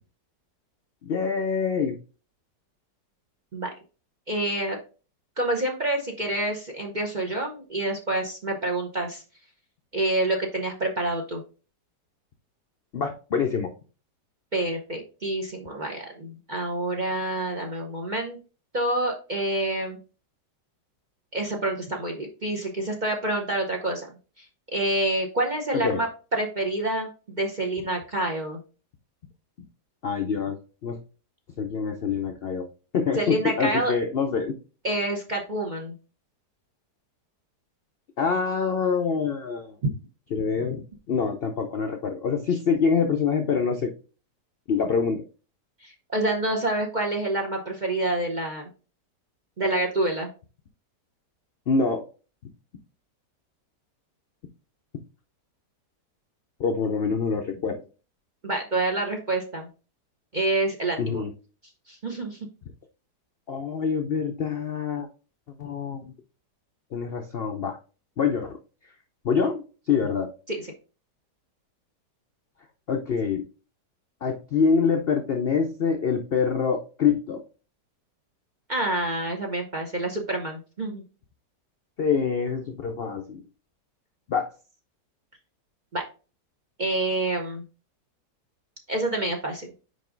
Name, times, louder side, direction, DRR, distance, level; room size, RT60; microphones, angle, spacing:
voice 1, 1.0-2.0 12.9-13.7 25.7-26.0 30.0-31.0 31.6-32.7 32.9-34.5 38.2-39.8 40.3-43.9 44.7-45.2 51.7-52.0 56.6-57.8 61.0-61.3 63.5-65.1 65.6-66.1 66.9-67.8 68.2-68.6 69.2-70.3 72.9-73.4 74.2-77.4 82.0-83.4 84.3-84.5, left 5 dB, 70° left, 4 dB, 0.5 m, -25 dB
voice 2, 4.3-4.8 5.4-9.2 9.9-11.4 14.5-18.4 18.7-20.0 21.3-24.1 24.4-24.5 24.7-27.1 27.4-28.6 33.2-33.9 34.8-35.9 39.8-39.9 45.8-48.7 49.6-50.3 58.4-59.7 60.3-61.2 61.9-62.4 70.5-70.6 78.7-81.0 85.9-86.0 86.8-87.6 88.9-89.7, right 2 dB, 40° right, 3 dB, 0.7 m, -27 dB
5.2 x 4.9 x 3.8 m, 0.35 s
omnidirectional pair, 1.8 m